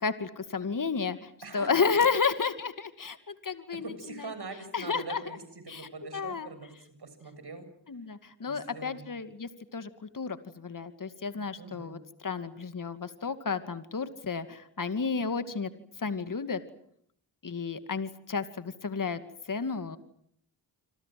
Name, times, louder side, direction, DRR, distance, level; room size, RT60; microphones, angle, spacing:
voice 1, 0.0-4.3 4.7-5.2 5.7-6.5 7.9-15.7 16.0-16.6 17.4-19.2 19.5-20.0, left 5 dB, 40° left, 11 dB, 2.4 m, -32 dB
voice 2, 1.4-1.9 3.8-6.7 7.0-7.7 8.5-9.0 11.6-12.0, right 3 dB, 50° right, 10 dB, 7.3 m, -43 dB
26.5 x 26.5 x 7.7 m, 0.68 s
supercardioid pair, 40°, 50 cm